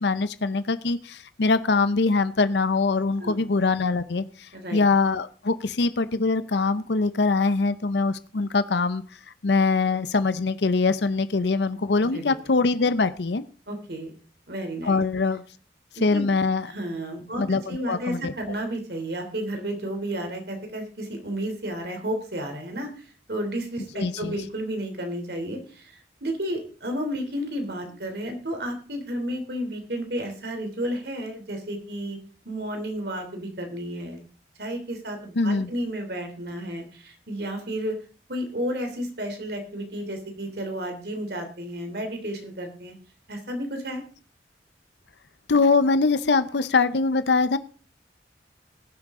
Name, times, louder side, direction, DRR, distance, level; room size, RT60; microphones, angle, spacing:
voice 1, 0.0-9.0 9.4-13.4 14.8-15.4 16.0-16.7 17.4-18.3 24.0-24.4 35.4-35.7 45.5-47.6, left 3 dB, 75° left, 13 dB, 0.7 m, -23 dB
voice 2, 4.5-4.8 12.0-12.4 13.7-14.1 14.5-15.0 16.1-16.3 16.7-32.2 32.4-34.2 34.6-38.0 38.3-42.9 43.3-44.0, equal, 65° right, 5 dB, 3.2 m, -32 dB
20.5 x 7.6 x 3.7 m, 0.38 s
head